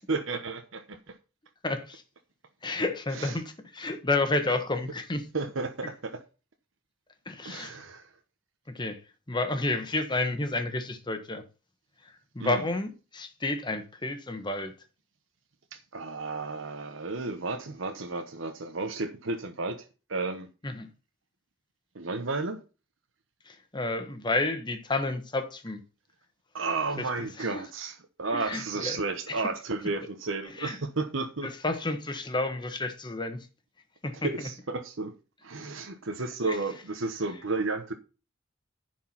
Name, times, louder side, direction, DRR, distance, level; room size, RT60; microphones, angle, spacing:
voice 1, 0.1-1.1 3.1-3.3 5.3-6.2 7.4-8.1 12.4-12.6 15.7-20.5 21.9-22.6 26.5-31.5 34.2-35.1 35.4-37.9, right 3 dB, 90° right, 1.1 m, -33 dB
voice 2, 1.6-2.0 2.6-5.2 7.3-7.8 8.7-9.0 9.3-11.4 12.0-14.7 20.6-20.9 23.5-25.8 27.0-27.1 27.4-27.6 28.3-29.0 29.3-29.4 30.6-30.8 31.4-33.5 34.0-34.5 36.5-36.6, left 2 dB, 25° left, 1.3 m, -31 dB
10.5 x 4.7 x 5.6 m
head